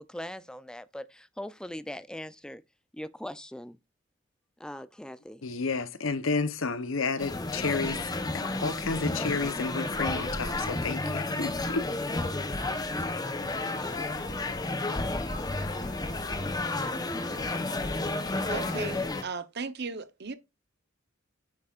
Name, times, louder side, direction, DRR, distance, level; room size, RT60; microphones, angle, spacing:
voice 1, 0.0-2.6 2.9-3.8 4.6-5.5, left 1 dB, 5° left, 0.5 m, -40 dB
voice 2, 5.4-11.9, left 4 dB, 70° left, 0.9 m, -31 dB
sound 1, 7.2-19.2, left 2 dB, 20° left, 1.0 m, -31 dB
sound 2, 13.4-19.0, left 3 dB, 35° left, 1.3 m, -44 dB
voice 3, 18.5-20.3, right 4 dB, 55° right, 0.9 m, -36 dB
9.8 x 7.9 x 2.5 m
head